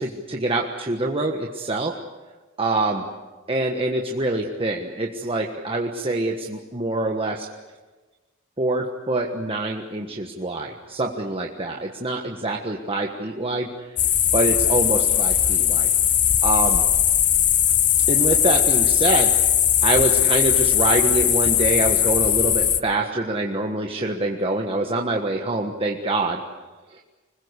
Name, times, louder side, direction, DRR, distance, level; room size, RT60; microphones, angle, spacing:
voice 1, 0.0-2.0 2.6-3.0 3.5-7.5 8.6-13.9 14.3-15.9 16.4-16.8 18.1-19.3 19.8-26.4 26.9-27.0, right 2 dB, 25° right, 1 dB, 1.4 m, -25 dB
sound 1, 14.0-22.8, left 10 dB, 40° left, 1.0 m, -19 dB
26.0 x 21.0 x 8.2 m, 1.3 s
head